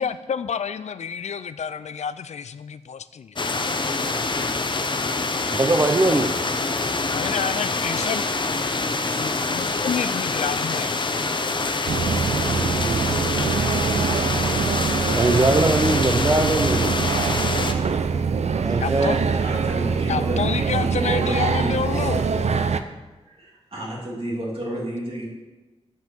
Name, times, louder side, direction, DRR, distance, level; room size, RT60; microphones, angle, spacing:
voice 1, 0.0-3.4 7.1-8.2 8.8-11.1 18.8-19.2 20.1-22.2, left 7 dB, 85° left, 14 dB, 0.4 m, -29 dB
sound 1, 3.4-17.7, left 3 dB, 45° left, 0.7 m, -25 dB
voice 2, 5.5-6.4 15.1-16.9 18.6-19.2, right 2 dB, 30° right, 3 dB, 0.6 m, -21 dB
sound 2, 11.9-22.8, right 5 dB, 75° right, 0.5 m, -24 dB
voice 3, 19.4-20.4 20.7-22.4 23.3-25.3, right 1 dB, 55° right, -4 dB, 2.9 m, -31 dB
8.9 x 5.4 x 5.9 m, 1.2 s
wide cardioid pair, 100°, 11 cm